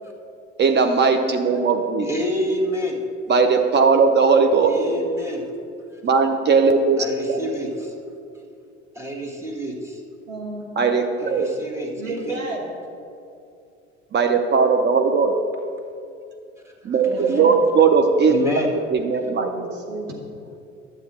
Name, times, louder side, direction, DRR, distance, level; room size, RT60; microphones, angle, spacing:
voice 1, 0.6-2.1 3.3-4.7 6.0-7.4 10.8-11.5 14.1-15.3 16.8-18.3 18.7-19.7, right 5 dB, 30° right, 5 dB, 0.7 m, -18 dB
voice 2, 2.0-3.0 4.6-5.4 7.0-7.9 8.9-10.0 11.2-12.4 16.8-17.4 18.3-18.7, equal, 5° right, -1 dB, 1.7 m, -28 dB
voice 3, 10.3-10.8 12.0-12.7 17.0-17.7 19.2-20.2, right 1 dB, 80° right, -1 dB, 1.7 m, -32 dB
11.5 x 7.3 x 4.3 m, 2.5 s
figure-of-eight pair, 65°, 38 cm